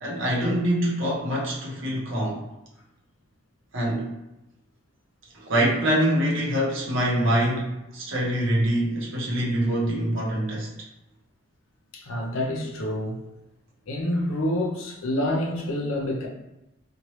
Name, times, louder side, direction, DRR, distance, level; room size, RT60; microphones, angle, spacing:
voice 1, 0.0-2.4 3.7-4.1 5.3-10.7, right 1 dB, 70° right, -3 dB, 0.8 m, -24 dB
voice 2, 11.9-13.2 13.9-16.3, left 1 dB, 80° left, 0 dB, 0.6 m, -27 dB
2.9 x 2.2 x 3.1 m, 0.94 s
head